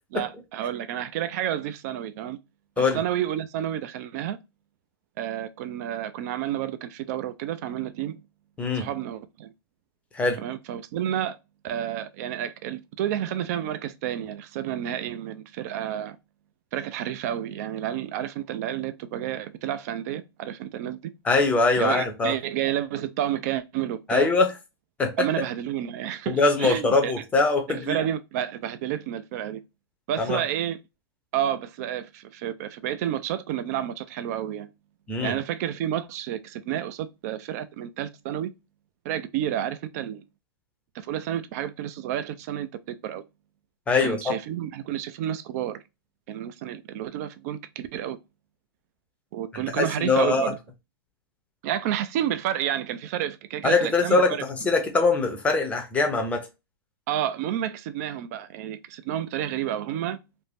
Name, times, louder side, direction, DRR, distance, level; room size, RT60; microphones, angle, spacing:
voice 1, 0.1-2.4 2.8-4.4 5.2-8.2 8.7-9.5 10.4-11.4 11.6-16.2 16.7-21.1 21.8-24.3 25.2-27.2 27.7-29.6 30.1-30.8 31.3-34.7 35.2-38.5 39.0-40.2 40.9-43.2 44.0-45.8 46.3-48.2 49.3-50.6 51.6-54.4 57.1-60.2, right 11 dB, 40° right, 0.4 m, -30 dB
voice 2, 21.2-22.3 24.1-24.5 25.0-25.1 26.3-28.0 30.2-30.4 35.1-35.3 43.9-44.3 49.5-50.5 53.6-56.5, left 3 dB, 10° left, 0.6 m, -22 dB
2.5 x 2.1 x 3.2 m
hypercardioid pair, 140°, 13 cm